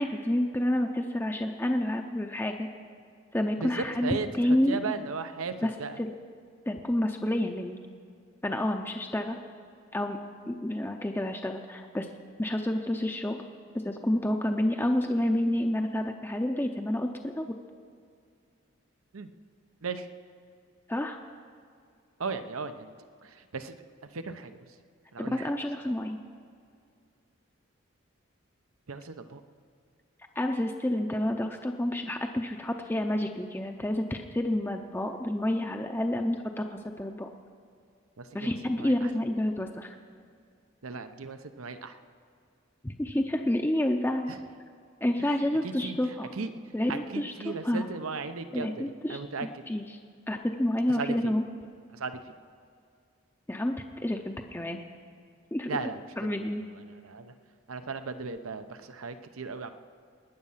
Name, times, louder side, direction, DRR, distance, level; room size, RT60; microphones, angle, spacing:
voice 1, 0.0-2.7 3.3-4.8 5.6-5.7 6.0-6.1 6.7-7.8 8.4-9.4 9.9-10.2 10.5-12.1 12.4-13.4 13.8-17.5 20.9-21.2 25.2-26.2 30.4-37.3 38.3-39.9 42.8-44.3 45.0-46.3 46.7-47.9 48.5-49.8 50.3-51.4 53.5-54.8 55.5-55.8 56.2-56.6, left 1 dB, 10° left, 4 dB, 0.5 m, -29 dB
voice 2, 3.6-6.0 19.1-19.3 19.8-20.1 22.2-22.9 23.2-23.8 24.1-24.6 25.1-25.5 25.8-25.9 28.9-29.4 38.2-39.1 40.8-42.0 44.3-44.4 45.2-48.8 49.1-49.5 50.9-51.3 51.9-52.3 55.7-57.3 57.7-59.7, right 4 dB, 90° right, 9 dB, 0.8 m, -37 dB
21.0 x 9.7 x 5.7 m, 2.3 s
head